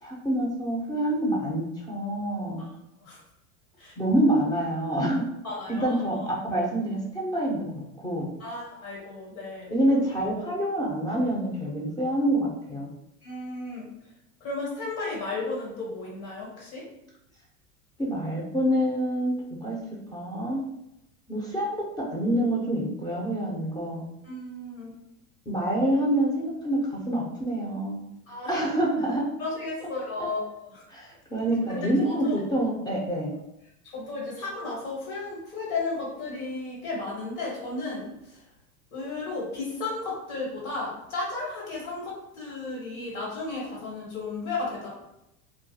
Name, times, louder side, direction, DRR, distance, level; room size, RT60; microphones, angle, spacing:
voice 1, 0.0-2.6 4.0-5.2 5.7-8.3 9.7-12.9 18.0-19.3 19.6-19.8 20.1-20.6 21.3-24.1 25.5-28.0 28.5-29.3 30.9-33.3, right 1 dB, 10° left, -3 dB, 0.4 m, -26 dB
voice 2, 5.4-6.3 8.4-9.7 13.2-13.9 14.4-16.9 24.2-25.0 28.3-28.5 29.4-30.8 31.7-32.4 33.9-38.4 38.9-44.9, left 3 dB, 90° left, -6 dB, 1.3 m, -34 dB
2.3 x 2.2 x 2.7 m, 0.85 s
supercardioid pair, 110°, 40 cm